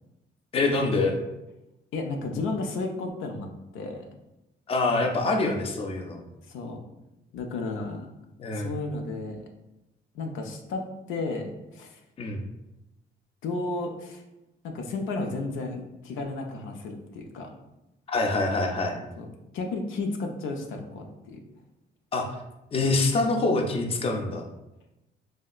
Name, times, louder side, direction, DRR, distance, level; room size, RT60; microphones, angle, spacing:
voice 1, 0.5-1.2 4.7-6.2 8.4-8.7 12.2-12.4 18.1-19.0 22.1-22.3 22.7-24.4, left 2 dB, 30° left, 2 dB, 0.4 m, -25 dB
voice 2, 1.9-3.5 3.7-4.1 6.5-6.8 7.3-8.1 8.5-9.4 10.1-10.8 11.1-12.0 13.4-14.2 14.6-17.5 19.2-19.3 19.5-21.4, left 3 dB, 80° left, 2 dB, 0.5 m, -33 dB
3.2 x 2.7 x 2.3 m, 0.94 s
cardioid pair, 90°, 20 cm